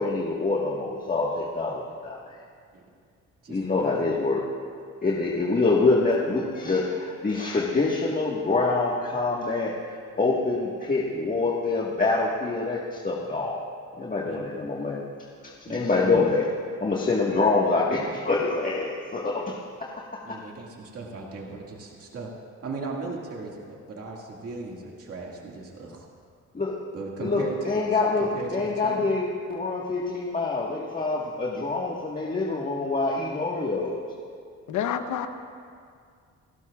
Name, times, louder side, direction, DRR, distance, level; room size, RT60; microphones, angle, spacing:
voice 1, 0.0-2.2 3.5-4.4 5.0-9.7 10.2-13.6 14.0-15.0 15.6-16.5 16.8-19.5 26.5-26.7 27.2-34.0, left 3 dB, 30° left, -4 dB, 1.6 m, -25 dB
voice 2, 3.4-4.0 5.0-5.2 14.2-14.6 15.7-16.1 20.2-22.3 22.6-26.1 26.9-29.1, right 3 dB, 50° right, -2 dB, 2.1 m, -38 dB
voice 3, 34.7-35.3, left 9 dB, 80° left, 8 dB, 1.0 m, -28 dB
29.0 x 12.5 x 2.4 m, 2.2 s
cardioid pair, 90°, 30 cm